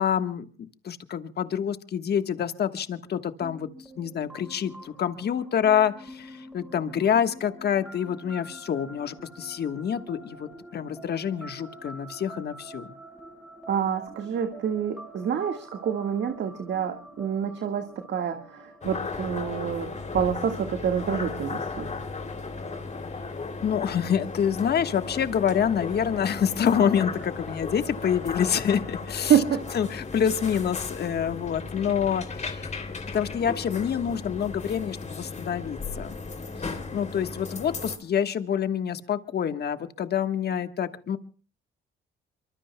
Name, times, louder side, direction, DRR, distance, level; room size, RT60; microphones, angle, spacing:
voice 1, 0.0-3.7 4.0-12.9 23.6-29.4 29.7-32.7 33.1-36.2 36.6-41.2, left 8 dB, 55° left, 10 dB, 1.3 m, -27 dB
sound 1, 3.4-22.9, equal, 5° right, 5.6 m, -47 dB
voice 2, 13.7-21.9 29.3-29.6, right 8 dB, 60° right, 6 dB, 1.7 m, -27 dB
sound 2, 18.8-38.0, left 4 dB, 35° left, 2.9 m, -36 dB
26.5 x 24.0 x 2.2 m, 0.38 s
cardioid pair, 90°, 20 cm